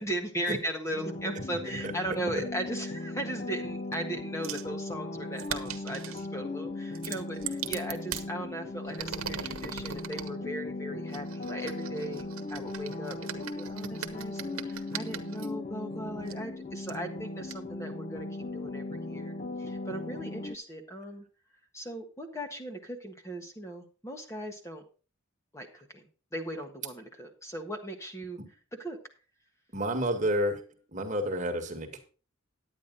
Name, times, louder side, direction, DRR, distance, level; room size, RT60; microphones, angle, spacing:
voice 1, 0.0-18.3 18.5-21.2 21.7-24.8 25.5-26.1 26.3-28.4 28.8-29.0, right 1 dB, 15° left, 4 dB, 1.4 m, -38 dB
sound 1, 0.9-20.6, left 2 dB, 35° left, 0.5 m, -38 dB
voice 2, 1.8-2.4 28.4-28.5 29.7-30.6 30.9-32.0, equal, 35° right, 4 dB, 1.8 m, -30 dB
sound 2, 4.4-4.7 5.4-6.2 6.9-8.3 8.8-10.3 11.1-15.5 16.3-16.4 16.9-17.0 17.5-17.6, right 9 dB, 70° right, 1.2 m, -39 dB
10.5 x 9.4 x 3.9 m, 0.35 s
head